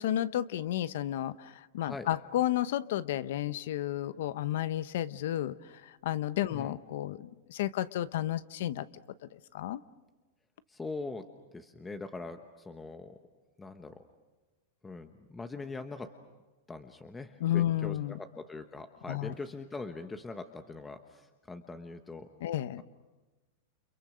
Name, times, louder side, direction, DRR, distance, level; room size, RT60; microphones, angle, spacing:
voice 1, 0.0-5.6 5.8-8.9 9.5-9.8 17.4-18.2 19.1-19.3 22.4-22.8, left 12 dB, 70° left, 15 dB, 0.9 m, -32 dB
voice 2, 6.5-6.8 10.7-11.3 11.5-13.2 13.6-14.0 14.8-16.1 16.7-22.4, left 3 dB, 10° left, 7 dB, 1.2 m, -42 dB
30.0 x 28.5 x 6.4 m, 1.2 s
supercardioid pair, 145°, 0 cm